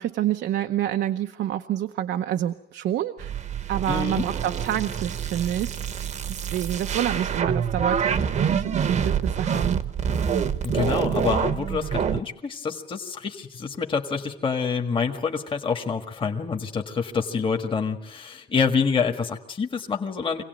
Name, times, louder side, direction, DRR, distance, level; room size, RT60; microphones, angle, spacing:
voice 1, 0.0-3.3 3.7-5.8 6.3-9.8, right 11 dB, 90° right, 7 dB, 0.9 m, -28 dB
sound 1, 3.2-12.2, right 7 dB, 40° right, 0.9 m, -26 dB
voice 2, 3.9-4.2 10.6-20.4, left 5 dB, 30° left, 4 dB, 1.6 m, -27 dB
26.0 x 18.0 x 9.3 m, 0.80 s
cardioid pair, 165°, 18 cm